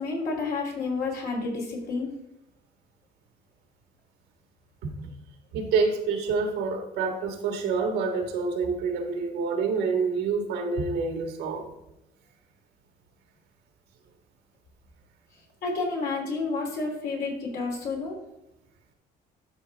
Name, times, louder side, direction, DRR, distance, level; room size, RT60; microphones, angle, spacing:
voice 1, 0.0-2.1 15.6-18.2, left 3 dB, 65° left, -1 dB, 3.0 m, -30 dB
voice 2, 5.5-11.7, right 4 dB, 85° right, 4 dB, 1.7 m, -27 dB
12.0 x 4.8 x 3.5 m, 0.92 s
cardioid pair, 110°, 17 cm